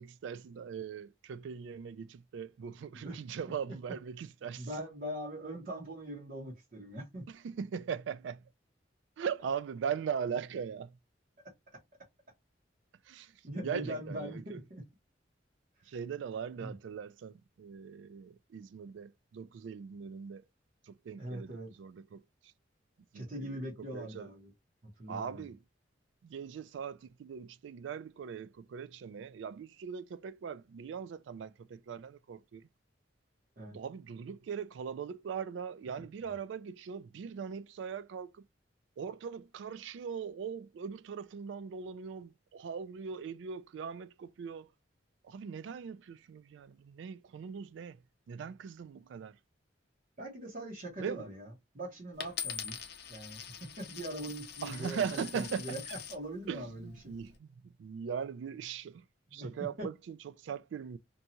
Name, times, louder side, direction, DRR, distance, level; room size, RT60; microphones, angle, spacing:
voice 1, 0.0-4.7 7.3-8.4 9.2-10.9 13.1-13.3 13.6-14.6 15.9-20.4 20.9-21.5 21.8-22.2 23.1-23.6 23.9-24.3 25.1-25.6 26.2-32.6 33.7-38.3 39.0-44.7 45.2-48.0 48.3-49.4 51.0-51.3 54.6-56.0 56.5-59.0 59.3-61.0, right 7 dB, 75° right, 0.3 m, -40 dB
voice 2, 4.5-7.2 13.4-14.8 16.6-16.7 21.2-21.7 23.1-24.5 25.0-25.5 33.6-33.8 50.2-52.8 53.1-55.8 56.1-57.1 59.3-59.5 59.8-59.9, right 1 dB, 50° right, 0.9 m, -41 dB
Coin (dropping), 52.2-56.2 56.9-57.3, left 8 dB, 60° left, 0.5 m, -43 dB
2.7 x 2.3 x 2.7 m
head